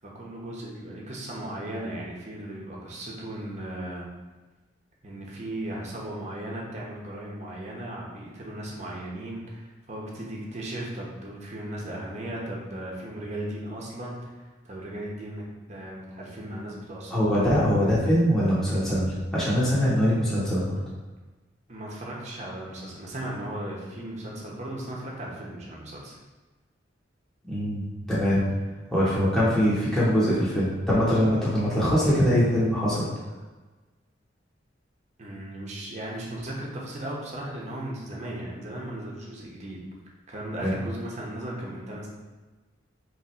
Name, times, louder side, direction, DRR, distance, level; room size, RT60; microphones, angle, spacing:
voice 1, 0.0-4.0 5.0-14.3 14.6-15.4 15.7-17.5 21.7-26.2 35.2-39.8 40.3-42.1, right 1 dB, 40° right, -3 dB, 0.9 m, -36 dB
voice 2, 17.1-20.8 27.4-28.4 28.9-33.1 40.6-40.7, equal, ahead, -10 dB, 1.0 m, -23 dB
3.6 x 3.1 x 4.4 m, 1.2 s
head